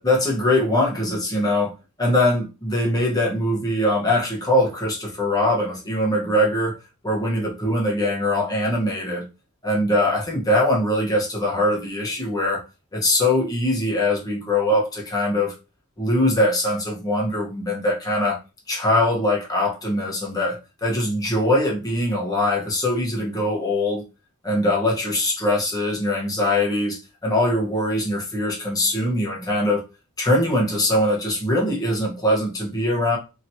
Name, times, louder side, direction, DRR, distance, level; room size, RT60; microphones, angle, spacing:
voice 1, 0.0-1.7 2.0-6.7 7.0-9.2 9.6-12.6 12.9-15.5 16.0-18.4 18.7-20.6 20.8-24.0 24.4-29.8 30.2-33.2, left 1 dB, 20° left, -3 dB, 1.1 m, -22 dB
3.0 x 2.9 x 2.7 m, 0.29 s
head